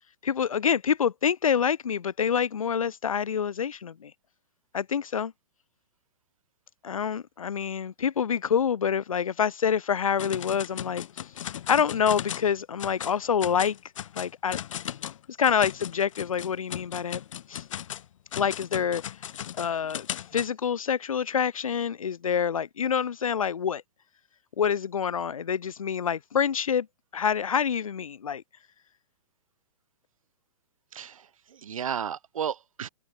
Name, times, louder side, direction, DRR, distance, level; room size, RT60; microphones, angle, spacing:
voice 1, 0.2-4.1 4.7-5.3 6.8-11.0 11.7-13.8 14.1-14.6 15.4-17.2 17.5-17.6 18.3-19.0 19.6-20.1 20.3-23.8 24.6-26.9 27.1-28.4, left 7 dB, 90° left, 1.4 m, -26 dB
sound 1, 10.2-12.5 12.8-13.2 13.4-20.5, left 10 dB, 70° left, 2.3 m, -37 dB
voice 2, 30.9-32.9, right 8 dB, 80° right, 5.0 m, -34 dB
hypercardioid pair, 140°, 17 cm